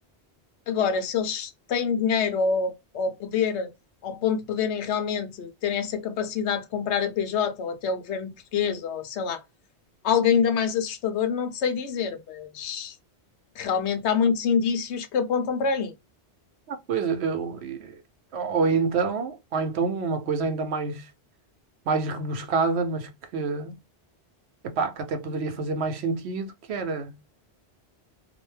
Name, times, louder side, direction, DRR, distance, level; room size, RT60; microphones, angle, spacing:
voice 1, 0.7-3.7 4.0-9.4 10.0-12.9 13.6-15.9, left 6 dB, 80° left, 0.9 m, -26 dB
voice 2, 16.7-18.0 18.3-21.1 21.9-23.7 24.6-27.2, right 4 dB, 75° right, 0.9 m, -27 dB
2.5 x 2.1 x 3.1 m
omnidirectional pair, 1.1 m